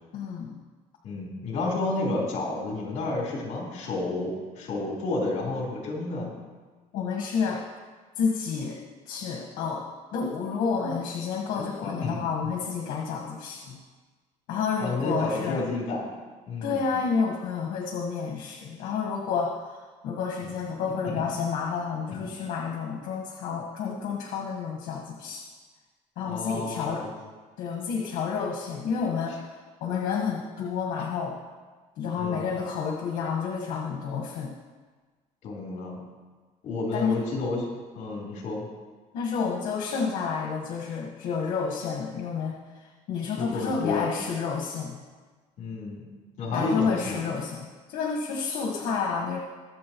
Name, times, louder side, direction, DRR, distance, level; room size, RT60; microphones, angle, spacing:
voice 1, 0.1-0.6 6.9-7.6 8.2-8.8 9.1-9.8 10.1-13.8 14.5-15.6 16.6-19.5 20.0-25.4 26.2-27.0 27.6-29.3 29.8-31.3 32.0-34.5 36.9-37.2 39.1-42.5 43.1-45.0 46.5-49.4, left 5 dB, 85° left, -1 dB, 1.5 m, -30 dB
voice 2, 1.0-6.3 11.8-12.2 14.8-16.1 16.5-16.9 20.4-20.5 21.0-21.3 22.1-22.2 26.3-27.2 32.1-32.5 35.4-36.0 36.6-37.7 37.9-38.7 43.4-44.1 45.6-46.0 46.4-47.2, left 2 dB, 60° left, -3 dB, 3.9 m, -31 dB
22.0 x 7.5 x 3.1 m, 1.4 s
cardioid pair, 145°, 14 cm